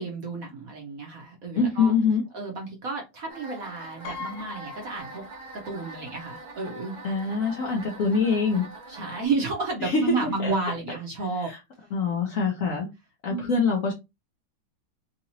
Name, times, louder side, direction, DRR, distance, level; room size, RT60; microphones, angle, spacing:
voice 1, 0.0-1.9 2.3-5.2 5.5-7.0 8.9-11.5 12.6-12.8 13.3-13.7, right 3 dB, 55° right, 1.0 m, -31 dB
voice 2, 1.6-2.2 7.0-8.6 9.8-10.5 11.5-11.6 11.9-12.9 13.2-13.9, left 4 dB, 70° left, 0.7 m, -24 dB
sound 1, 3.3-9.2, right 2 dB, 80° right, 0.4 m, -43 dB
Piano, 4.0-5.9 6.2-6.3 7.4-7.5 7.8-8.1, left 6 dB, 90° left, 1.5 m, -41 dB
3.9 x 2.9 x 2.7 m
omnidirectional pair, 2.4 m